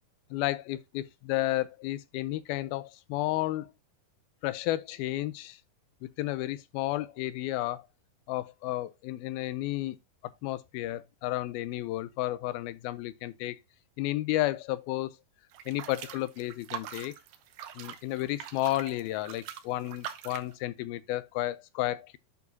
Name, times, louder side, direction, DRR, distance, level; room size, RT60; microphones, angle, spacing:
voice 1, 0.3-3.7 4.4-5.6 6.0-7.9 8.3-10.0 10.4-13.6 14.0-15.1 15.7-17.1 17.8-22.2, left 16 dB, 80° left, 2.3 m, -32 dB
sound 1, 15.5-20.5, right 10 dB, 70° right, 2.2 m, -43 dB
11.0 x 4.7 x 2.8 m
omnidirectional pair, 4.7 m